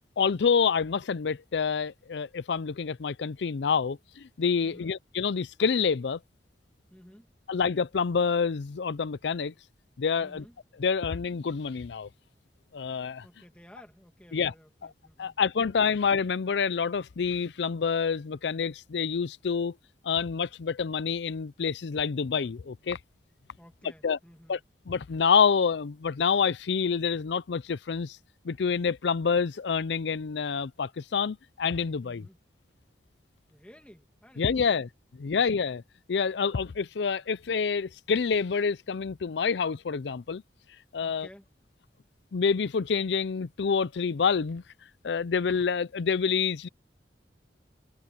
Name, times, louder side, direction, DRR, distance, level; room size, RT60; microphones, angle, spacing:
voice 1, 0.2-6.2 7.5-9.5 10.0-10.4 10.8-12.1 12.7-13.2 14.3-14.5 15.2-19.7 20.0-23.0 24.0-24.2 24.5-24.6 24.9-28.2 28.4-32.2 34.4-34.9 35.2-35.8 36.1-40.4 40.9-41.3 42.3-44.6 45.0-46.7, left 6 dB, 75° left, 0.5 m, -27 dB
voice 2, 4.6-4.9 6.9-7.3 10.2-10.6 13.2-16.0 23.6-24.6 32.0-32.4 33.5-34.9 41.0-41.5, equal, 5° left, 2.2 m, -54 dB
head